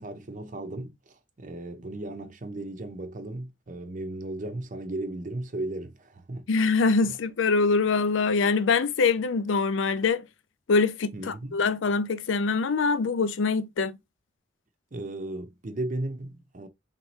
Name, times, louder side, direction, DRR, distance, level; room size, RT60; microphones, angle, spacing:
voice 1, 0.0-6.5 7.0-7.1 11.1-11.6 14.9-16.7, right 2 dB, 45° right, 0.7 m, -36 dB
voice 2, 6.5-10.2 10.7-14.0, left 4 dB, 85° left, 0.5 m, -24 dB
4.1 x 3.3 x 3.2 m
head